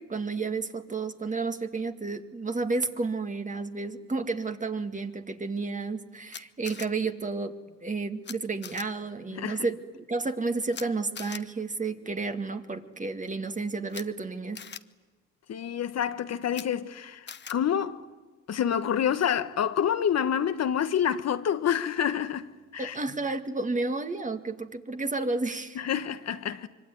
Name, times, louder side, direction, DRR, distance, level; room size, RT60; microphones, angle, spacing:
voice 1, 0.0-9.8 10.1-14.6 22.8-25.8, right 3 dB, 25° right, 2.0 m, -31 dB
Camera, 6.3-6.9 8.2-8.3 8.6-8.8 10.7-10.8 11.1-11.4 13.9-14.0 14.5-14.8 16.5-16.6 17.3-17.5, left 7 dB, 35° left, 1.1 m, -40 dB
voice 2, 9.3-9.7 15.5-18.0 18.5-23.0 25.7-26.7, left 9 dB, 60° left, 1.2 m, -28 dB
25.0 x 24.0 x 9.8 m
cardioid pair, 90°, 30 cm